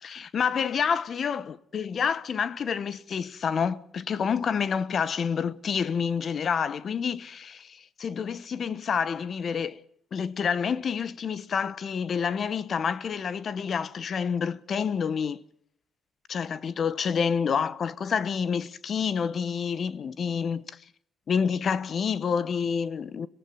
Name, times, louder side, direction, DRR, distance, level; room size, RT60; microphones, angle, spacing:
voice 1, 0.0-9.8 10.1-15.4 16.3-20.6 21.3-23.3, left 6 dB, 50° left, 1.0 m, -28 dB
23.5 x 15.5 x 9.4 m
cardioid pair, 90°, 0 cm